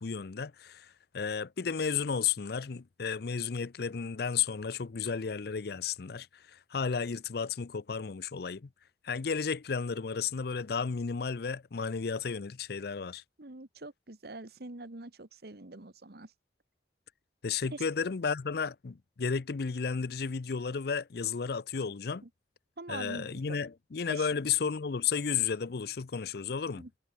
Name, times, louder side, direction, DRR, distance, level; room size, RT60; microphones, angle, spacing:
voice 1, 0.0-8.7 9.0-13.2 17.4-22.2 22.9-26.9, left 6 dB, 60° left, 0.6 m, -33 dB
voice 2, 13.4-16.3 17.7-17.8 22.2-22.3 22.8-23.6 24.1-24.3 26.8-26.9, right 2 dB, 60° right, 1.6 m, -44 dB
head